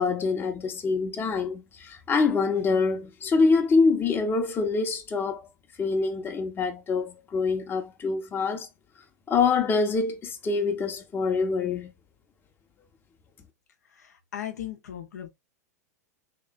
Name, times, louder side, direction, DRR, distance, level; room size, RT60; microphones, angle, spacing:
voice 1, 0.0-5.5 5.8-8.7 9.3-11.9, left 4 dB, 25° left, 0.7 m, -25 dB
voice 2, 13.9-15.3, left 11 dB, 75° left, 0.7 m, -37 dB
3.1 x 2.9 x 2.3 m
hypercardioid pair, 95°, 9 cm